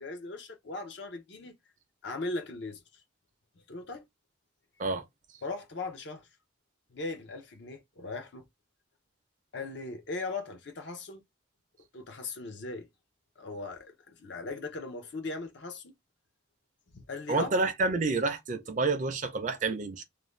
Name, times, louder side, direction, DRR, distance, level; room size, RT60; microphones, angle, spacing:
voice 1, 0.0-1.6 2.0-3.0 3.7-4.0 5.4-6.3 6.9-8.5 9.5-11.2 11.9-12.9 13.4-15.9 16.9-17.5, left 3 dB, 55° left, 0.6 m, -39 dB
voice 2, 17.3-20.0, right 3 dB, 40° right, 0.5 m, -29 dB
2.5 x 2.1 x 3.1 m
head